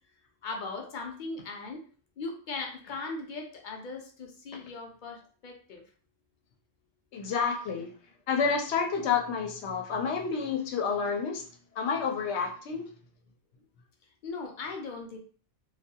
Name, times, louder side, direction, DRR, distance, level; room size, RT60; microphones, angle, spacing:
voice 1, 0.4-1.8 2.2-5.8 14.2-15.2, left 3 dB, 55° left, 2 dB, 0.6 m, -38 dB
voice 2, 7.1-7.9 8.3-11.4 11.8-12.9, left 5 dB, 80° left, 3 dB, 0.9 m, -29 dB
2.3 x 2.2 x 2.7 m, 0.42 s
omnidirectional pair, 1.1 m